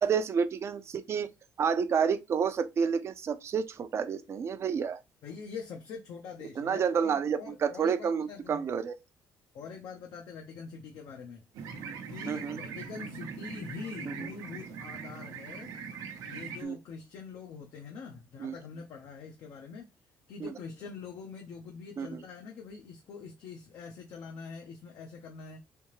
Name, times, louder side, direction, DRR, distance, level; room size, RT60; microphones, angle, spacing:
voice 1, 0.0-1.3 1.6-5.0 6.6-9.0 12.3-12.6 14.1-14.3 16.6-16.8 18.4-18.5 20.4-20.5 22.0-22.2, right 6 dB, 45° right, 0.5 m, -29 dB
voice 2, 5.2-8.8 9.5-11.4 12.1-15.7 16.3-19.9 20.3-25.6, left 5 dB, 70° left, 0.7 m, -44 dB
sound 1, 11.5-16.6, right 6 dB, 80° right, 0.8 m, -41 dB
3.4 x 2.8 x 3.0 m
cardioid pair, 115°, 6 cm